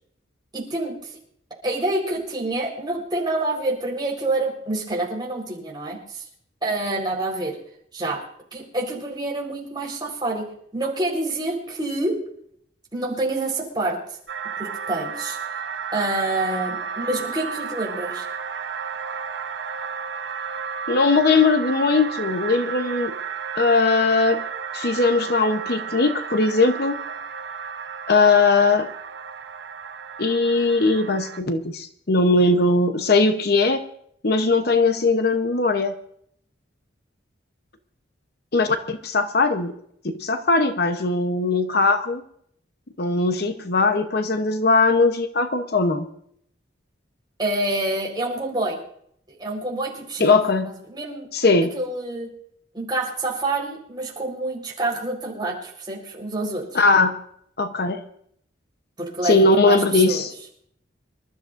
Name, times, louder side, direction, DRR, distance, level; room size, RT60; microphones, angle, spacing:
voice 1, 0.5-1.1 1.6-6.2 6.6-7.6 7.9-8.2 8.5-10.4 10.7-12.2 12.9-14.2 14.6-15.4 15.9-18.2 47.4-48.8 49.3-50.3 50.9-51.3 51.7-52.3 52.7-56.8 59.0-59.8 60.1-60.3, right 2 dB, 20° right, -1 dB, 4.3 m, -27 dB
sound 1, 14.3-31.4, right 6 dB, 60° right, 0.9 m, -33 dB
voice 2, 20.9-23.1 23.6-24.4 24.7-27.0 28.1-28.9 30.2-33.8 34.2-35.9 38.5-39.8 40.1-42.2 43.0-46.1 50.2-50.7 51.3-51.7 56.7-57.1 57.6-58.0 59.2-60.3, left 3 dB, 55° left, 7 dB, 0.9 m, -19 dB
26.0 x 13.0 x 2.6 m, 0.66 s
head